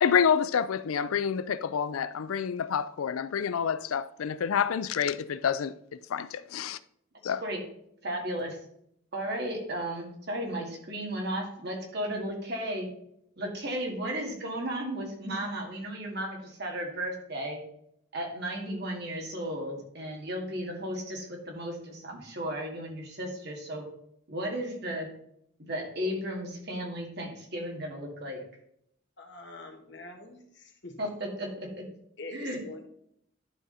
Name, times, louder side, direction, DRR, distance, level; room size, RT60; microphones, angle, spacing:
voice 1, 0.0-5.7 6.1-6.8 7.2-7.4, left 7 dB, 90° left, 0.4 m, -28 dB
voice 2, 8.0-8.6 9.1-12.9 13.4-17.6 18.1-23.9 24.3-25.1 25.6-28.4 31.0-31.9 32.3-32.6, right 1 dB, 50° right, 2.2 m, -34 dB
voice 3, 29.2-31.0 32.2-32.9, left 2 dB, 55° left, 1.6 m, -44 dB
11.5 x 4.9 x 4.1 m
head